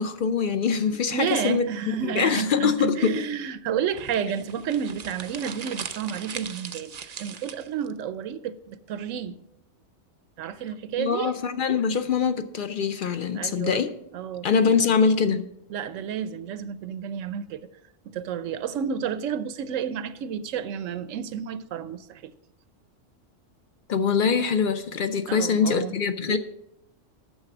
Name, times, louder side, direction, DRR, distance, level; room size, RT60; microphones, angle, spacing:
voice 1, 0.0-3.3 11.0-13.9 14.4-15.4 23.9-26.4, left 6 dB, 60° left, 0.6 m, -24 dB
voice 2, 1.1-9.4 10.4-11.3 13.3-13.8 14.1-14.8 15.7-17.7 18.0-22.3 25.3-25.9 26.2-26.4, right 8 dB, 85° right, 1.0 m, -31 dB
sound 1, 3.9-7.9, right 7 dB, 50° right, 0.5 m, -39 dB
9.3 x 6.7 x 5.9 m
omnidirectional pair, 1.3 m